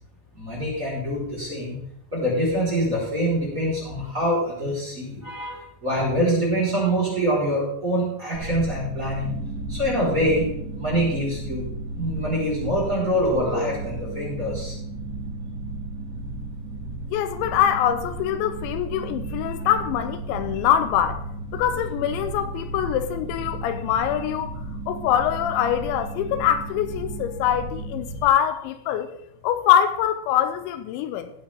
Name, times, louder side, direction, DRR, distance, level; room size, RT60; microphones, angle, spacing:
voice 1, 0.4-1.8 2.1-5.6 5.8-9.3 9.7-10.4 10.8-11.6 12.0-14.7, equal, 20° right, 4.8 m, -25 dB
sound 1, 8.3-28.3, right 2 dB, 75° right, 5.1 m, -34 dB
voice 2, 17.1-21.3 21.5-29.1 29.4-31.3, left 10 dB, 85° left, 3.0 m, -24 dB
16.5 x 8.5 x 3.7 m
omnidirectional pair, 5.2 m